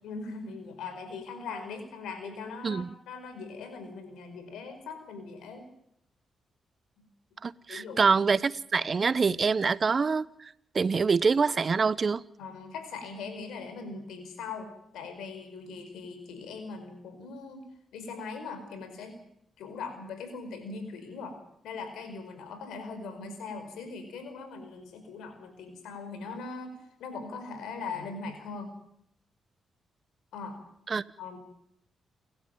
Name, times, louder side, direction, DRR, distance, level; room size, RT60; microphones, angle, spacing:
voice 1, 0.0-5.7 7.0-7.1 7.7-8.1 12.4-17.6 17.9-19.1 19.6-21.3 21.6-28.7 30.3-30.6 31.2-31.4, left 4 dB, 85° left, 5.0 m, -40 dB
voice 2, 7.4-12.2 30.9-31.0, right 5 dB, 45° right, 0.9 m, -25 dB
28.5 x 12.0 x 9.1 m
supercardioid pair, 55°, 0 cm